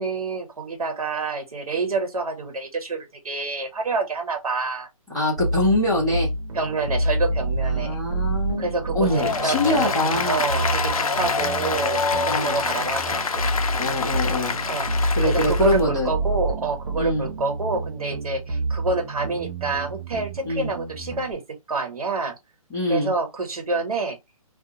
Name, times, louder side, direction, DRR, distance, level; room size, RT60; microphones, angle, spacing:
voice 1, 0.0-4.9 6.5-8.0 8.6-9.9 10.3-13.5 14.7-22.4 22.9-24.2, right 3 dB, 80° right, 1.2 m, -27 dB
voice 2, 5.1-6.3 7.6-10.5 12.3-12.6 13.8-14.5 15.1-16.1 17.0-17.3 20.4-20.7 22.7-23.1, left 1 dB, ahead, 0.6 m, -24 dB
sound 1, 5.4-21.3, right 2 dB, 65° right, 0.6 m, -28 dB
Applause, 9.0-15.8, left 5 dB, 75° left, 0.6 m, -26 dB
2.4 x 2.2 x 2.9 m
hypercardioid pair, 180°, 19 cm